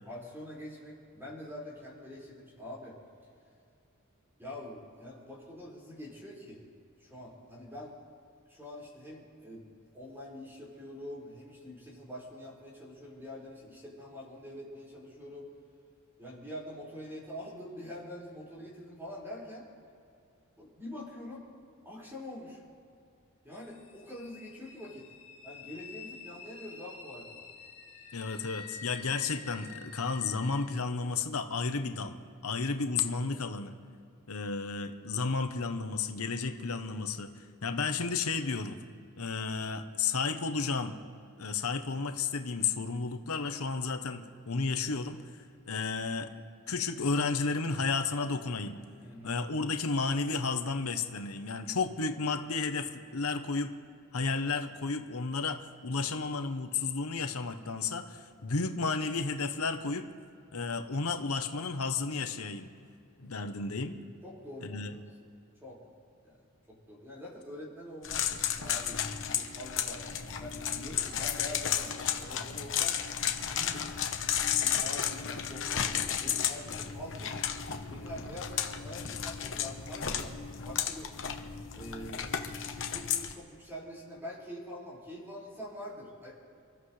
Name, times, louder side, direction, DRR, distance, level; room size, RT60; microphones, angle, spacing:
voice 1, 0.1-3.0 4.4-6.7 7.0-7.9 8.5-15.5 16.2-19.7 20.6-21.4 21.8-22.6 23.4-25.0 25.4-27.5 49.0-49.4 63.4-63.5 64.2-65.3 65.6-65.8 66.2-66.4 66.7-68.3 68.5-72.9 73.5-73.8 74.5-77.3 77.9-81.1 81.7-86.3, left 1 dB, 10° right, -6 dB, 5.2 m, -45 dB
sound 1, 23.5-30.7, left 5 dB, 30° left, 3.6 m, -49 dB
voice 2, 28.1-32.2 32.4-33.7 34.3-38.8 39.2-41.0 41.4-45.2 45.7-46.3 46.7-48.8 49.2-53.7 54.1-60.1 60.5-62.7 63.2-64.0 64.6-64.9, left 4 dB, 90° left, 7 dB, 1.0 m, -32 dB
sound 2, 68.0-83.3, left 8 dB, 60° left, 1.1 m, -33 dB
29.0 x 14.0 x 3.3 m, 2.5 s
head